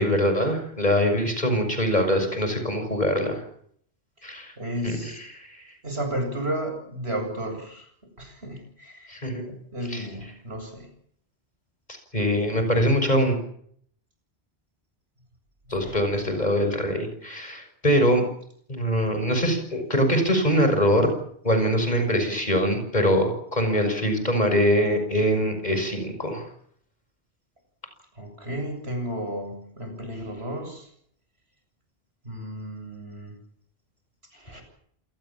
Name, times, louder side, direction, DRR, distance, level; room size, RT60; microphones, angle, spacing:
voice 1, 0.0-3.4 4.2-4.5 4.8-5.6 9.1-9.5 9.9-10.1 12.1-13.4 15.7-18.2 18.7-21.1 21.4-26.5, equal, 40° left, 7 dB, 6.6 m, -23 dB
voice 2, 4.6-5.2 5.8-7.9 8.2-9.3 9.7-10.9 15.7-16.1 28.1-30.9 32.2-33.4 34.3-34.6, right 1 dB, 70° right, 5 dB, 8.2 m, -33 dB
27.5 x 20.0 x 7.4 m, 0.65 s
omnidirectional pair, 1.1 m